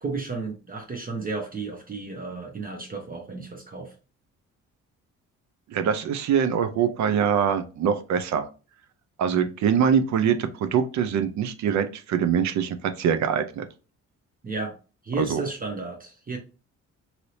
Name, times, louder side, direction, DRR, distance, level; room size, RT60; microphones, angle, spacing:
voice 1, 0.0-3.9 14.4-14.7 15.0-16.4, right 3 dB, 30° right, 3 dB, 0.7 m, -33 dB
voice 2, 5.7-8.5 9.2-13.7 15.2-15.5, right 7 dB, 70° right, 10 dB, 0.6 m, -24 dB
2.8 x 2.7 x 3.1 m, 0.34 s
cardioid pair, 90°, 30 cm